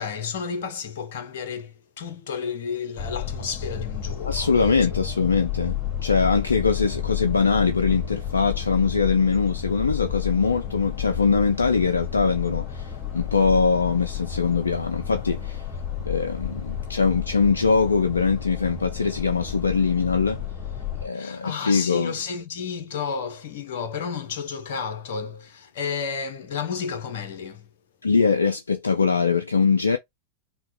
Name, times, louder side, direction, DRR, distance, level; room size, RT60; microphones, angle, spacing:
voice 1, 0.0-4.7 21.1-27.7, left 6 dB, 55° left, 0.9 m, -32 dB
sound 1, 3.0-21.1, left 9 dB, 25° left, 2.0 m, -31 dB
voice 2, 4.3-5.8 6.0-15.6 16.0-20.4 21.0-22.1 28.0-30.0, left 5 dB, 75° left, 0.4 m, -22 dB
5.6 x 2.3 x 2.7 m
figure-of-eight pair, 90°, 0 cm